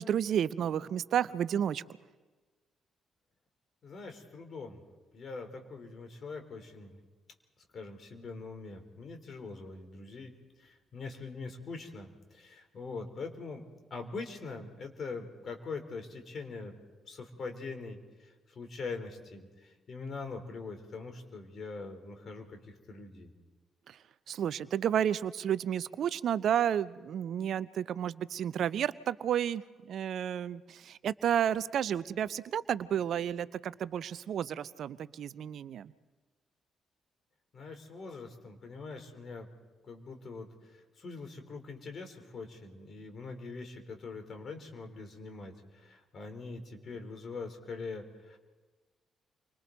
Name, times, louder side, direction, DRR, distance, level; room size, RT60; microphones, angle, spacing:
voice 1, 0.0-1.8 23.9-24.0 24.3-35.9, right 9 dB, 60° right, 17 dB, 0.6 m, -31 dB
voice 2, 3.8-4.8 5.1-7.0 7.7-10.3 10.6-13.6 13.9-16.7 17.1-23.3 37.5-39.5 39.8-48.4, left 4 dB, 50° left, 6 dB, 3.6 m, -43 dB
29.5 x 24.5 x 4.0 m, 1.4 s
hypercardioid pair, 40°, 0 cm